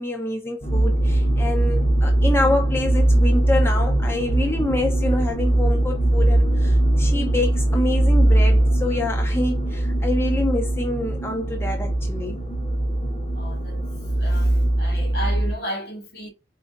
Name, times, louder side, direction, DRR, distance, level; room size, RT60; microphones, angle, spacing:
voice 1, 0.0-12.4, left 1 dB, 15° left, 0.5 m, -26 dB
sound 1, 0.6-15.5, right 1 dB, 35° left, 0.9 m, -20 dB
voice 2, 13.3-13.8 14.2-16.3, equal, 60° left, 1.3 m, -33 dB
4.5 x 2.7 x 2.4 m
head